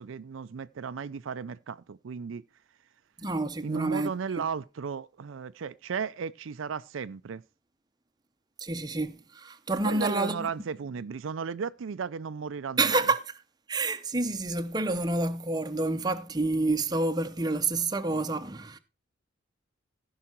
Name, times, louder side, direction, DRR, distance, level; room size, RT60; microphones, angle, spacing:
voice 1, 0.0-2.4 3.6-7.4 9.9-13.0, right 6 dB, 85° right, 0.4 m, -35 dB
voice 2, 3.2-4.1 4.4-4.5 8.6-10.5 12.8-13.2 13.7-18.8, right 2 dB, 20° right, 0.7 m, -28 dB
15.0 x 5.6 x 4.4 m
head